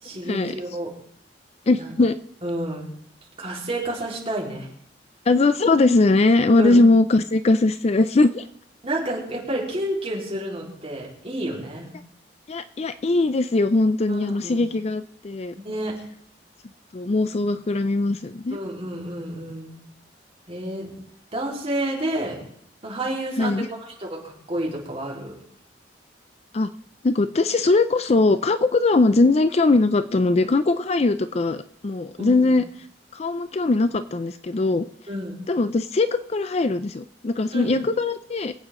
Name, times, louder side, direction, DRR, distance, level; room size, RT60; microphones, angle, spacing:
voice 1, 0.0-0.9 1.8-1.9 2.4-2.9 3.4-4.7 6.6-6.8 8.8-11.9 14.1-14.6 15.6-15.9 18.5-19.8 20.5-20.9 21.3-22.4 22.8-23.7 24.0-25.3 32.2-32.6 35.1-35.4 37.5-37.7, right 1 dB, 35° right, -4 dB, 4.0 m, -30 dB
voice 2, 1.7-2.2 5.3-8.5 12.5-15.5 16.9-18.6 23.4-23.7 26.5-26.7 27.0-32.6 33.1-34.9 35.5-38.5, left 3 dB, 35° left, 12 dB, 0.4 m, -20 dB
24.0 x 8.5 x 3.7 m, 0.68 s
head